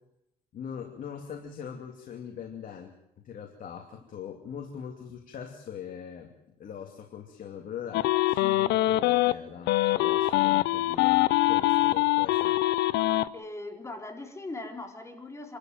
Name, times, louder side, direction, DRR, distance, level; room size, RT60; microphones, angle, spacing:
voice 1, 0.5-12.6, left 8 dB, 55° left, 2 dB, 2.7 m, -41 dB
sound 1, 7.9-9.3 9.7-13.3, left 17 dB, 85° left, 0.7 m, -23 dB
voice 2, 13.3-15.6, left 2 dB, 15° left, 3 dB, 3.8 m, -40 dB
26.5 x 13.0 x 9.3 m, 0.84 s
cardioid pair, 110°, 17 cm